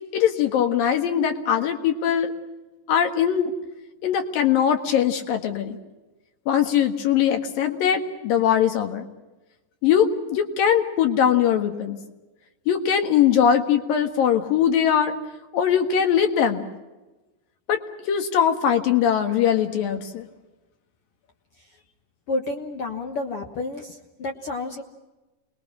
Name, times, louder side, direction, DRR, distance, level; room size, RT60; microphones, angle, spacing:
voice 1, 0.1-2.3 2.9-3.5 4.0-5.8 6.5-9.1 9.8-12.0 12.7-15.2 15.5-16.7 17.7-17.8 18.1-20.3, left 8 dB, 80° left, 6 dB, 3.4 m, -21 dB
voice 2, 22.3-24.8, left 2 dB, 55° left, 3 dB, 1.8 m, -30 dB
28.5 x 21.0 x 6.1 m, 1.1 s
omnidirectional pair, 4.0 m